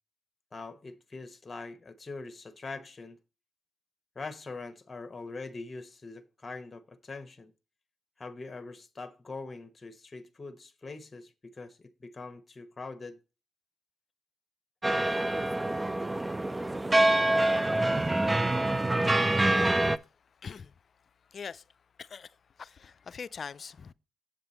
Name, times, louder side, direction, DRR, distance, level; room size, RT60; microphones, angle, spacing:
voice 1, 0.5-3.2 4.1-7.5 8.2-13.2, left 3 dB, 35° left, 1.1 m, -43 dB
sound 1, 14.8-20.0, right 1 dB, 20° right, 0.5 m, -26 dB
voice 2, 20.4-20.7 21.3-21.6 22.0-22.3 22.6-23.9, left 6 dB, 55° left, 0.4 m, -42 dB
7.8 x 7.7 x 4.1 m
supercardioid pair, 50°, 0 cm